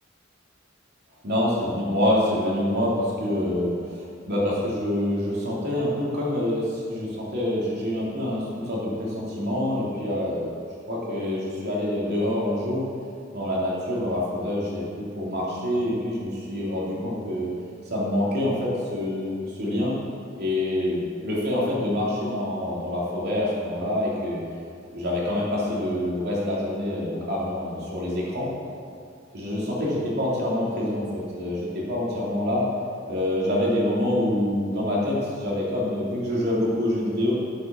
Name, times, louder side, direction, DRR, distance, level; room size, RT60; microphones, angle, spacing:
voice 1, 1.2-10.5 10.9-12.8 13.3-17.5 17.8-19.9 20.4-24.4 24.9-28.5 29.3-31.1 31.3-32.6 33.1-37.3, left 1 dB, 55° right, -6 dB, 3.0 m, -26 dB
9.6 x 6.9 x 6.4 m, 2.3 s
head